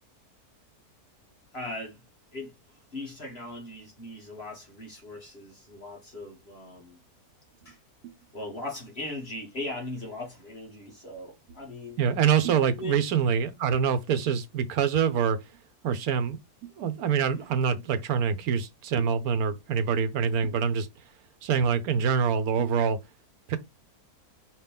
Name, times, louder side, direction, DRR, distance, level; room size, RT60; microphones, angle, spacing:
voice 1, 1.5-2.0 2.3-2.5 2.9-7.0 7.6-7.8 8.3-12.0 12.7-13.0, left 2 dB, 45° left, 1.6 m, -39 dB
voice 2, 12.0-15.4 15.8-20.9 21.4-23.0 23.5-23.6, right 7 dB, 75° right, 1.2 m, -25 dB
5.1 x 2.9 x 3.5 m
omnidirectional pair, 1.6 m